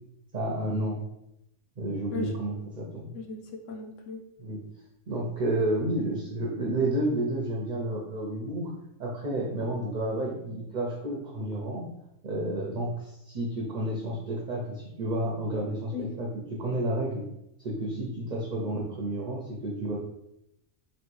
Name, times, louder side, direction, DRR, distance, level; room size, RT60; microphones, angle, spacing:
voice 1, 0.3-1.0 1.8-3.1 4.4-4.6 5.1-8.7 9.0-11.8 12.2-16.3 16.6-17.2 17.6-20.0, right 1 dB, 45° right, -2 dB, 0.6 m, -30 dB
voice 2, 3.1-4.2 15.9-16.1, left 5 dB, 65° left, 3 dB, 1.0 m, -37 dB
3.1 x 3.0 x 4.6 m, 0.81 s
omnidirectional pair, 1.4 m